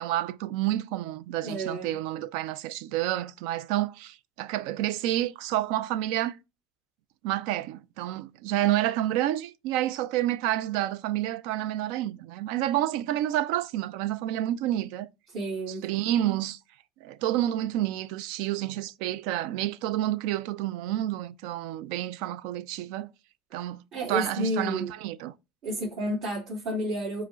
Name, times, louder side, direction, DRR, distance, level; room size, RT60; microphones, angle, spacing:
voice 1, 0.0-6.4 7.2-15.1 15.8-16.6 17.0-23.1 23.5-23.8 24.1-25.3, right 13 dB, 70° right, 0.3 m, -29 dB
voice 2, 1.4-1.9 15.3-15.8 23.9-24.9 25.6-27.2, right 1 dB, 55° right, 1.6 m, -31 dB
4.8 x 2.1 x 3.6 m
supercardioid pair, 130°, 0 cm